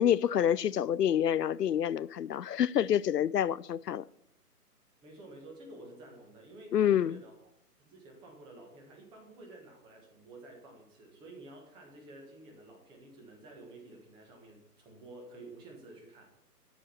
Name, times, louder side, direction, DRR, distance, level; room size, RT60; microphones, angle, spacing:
voice 1, 0.0-4.0 6.7-7.2, left 10 dB, 80° left, 0.5 m, -27 dB
voice 2, 5.0-7.3 7.8-16.4, right 2 dB, 10° right, 1.3 m, -51 dB
12.5 x 5.0 x 7.0 m
figure-of-eight pair, 145°, 47 cm